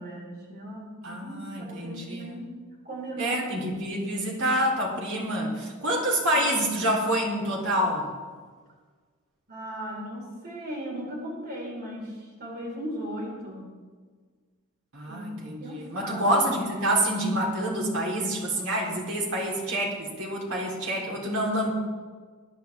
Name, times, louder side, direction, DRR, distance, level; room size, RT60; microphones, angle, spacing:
voice 1, 0.0-2.5 2.8-3.8 6.3-6.4 9.5-13.7 15.1-15.3 15.6-16.3, right 1 dB, 45° right, -3 dB, 4.6 m, -37 dB
voice 2, 1.0-2.4 3.2-8.1 14.9-21.7, right 1 dB, 75° right, -2 dB, 3.6 m, -27 dB
20.5 x 11.0 x 3.5 m, 1.5 s
head